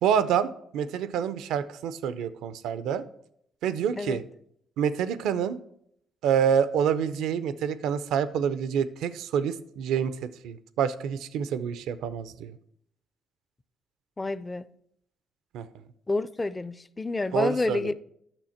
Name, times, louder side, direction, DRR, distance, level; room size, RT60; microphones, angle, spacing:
voice 1, 0.0-3.0 3.6-4.2 4.8-5.6 6.2-10.1 10.4-12.5 15.5-15.6 17.3-17.9, right 8 dB, 90° right, 0.5 m, -27 dB
voice 2, 14.2-14.7 16.1-17.9, left 2 dB, 20° left, 0.4 m, -29 dB
9.0 x 6.4 x 4.3 m
cardioid pair, 90°, 0 cm